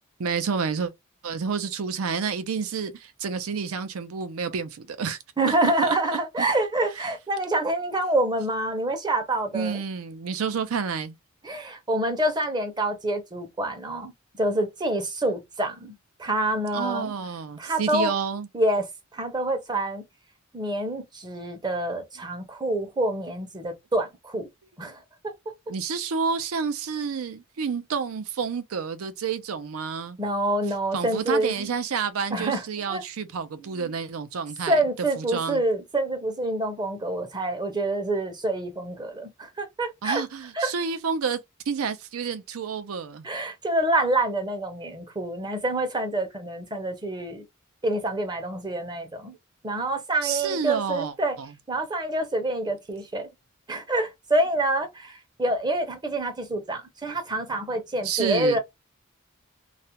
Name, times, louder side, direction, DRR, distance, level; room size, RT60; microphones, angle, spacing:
voice 1, 0.2-0.9 1.2-5.2 5.5-5.6 5.8-6.0 6.4-6.5 9.5-11.2 16.7-18.5 25.7-30.2 30.9-34.8 35.2-35.6 40.0-41.4 41.7-43.3 50.2-51.5 58.0-58.6, right 6 dB, 85° right, 0.5 m, -29 dB
voice 2, 5.4-9.8 11.4-14.1 14.4-17.1 17.6-18.1 18.5-18.9 19.1-20.0 20.5-24.5 24.8-25.0 30.2-31.7 32.3-33.0 33.6-33.9 34.7-40.2 40.6-40.7 43.2-47.4 47.8-49.3 49.6-51.4 51.7-53.3 53.7-58.6, right 1 dB, 20° right, 0.6 m, -27 dB
2.4 x 2.1 x 2.8 m
head